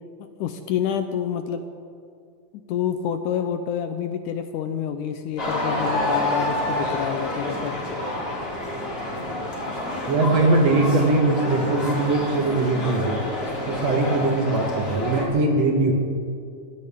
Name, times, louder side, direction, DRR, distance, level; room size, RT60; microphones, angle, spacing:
voice 1, 0.4-1.7 2.5-7.8, left 8 dB, 75° left, 8 dB, 2.0 m, -28 dB
sound 1, 5.4-15.3, left 1 dB, 25° left, 2.7 m, -28 dB
voice 2, 10.1-13.2 13.7-15.9, right 2 dB, 55° right, 1 dB, 2.2 m, -21 dB
21.0 x 16.0 x 3.6 m, 2.3 s
omnidirectional pair, 4.0 m